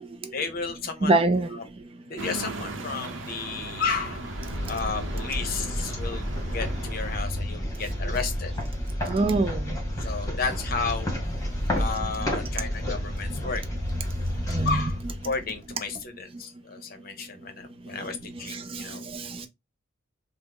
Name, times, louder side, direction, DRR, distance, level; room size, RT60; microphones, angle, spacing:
voice 1, 0.3-1.1 1.5-1.6 2.1-4.4 4.7-6.3 6.5-8.5 10.0-11.1 11.8-13.6 14.6-19.0, left 5 dB, 50° left, 0.7 m, -33 dB
voice 2, 1.0-1.6 9.1-9.8 14.5-14.9 18.5-18.8 19.1-19.5, right 2 dB, 30° right, 0.4 m, -25 dB
sound 1, 2.2-7.2, right 2 dB, 80° right, 0.6 m, -38 dB
sound 2, 3.7-15.8, equal, 20° left, 1.3 m, -31 dB
3.4 x 2.0 x 3.5 m
head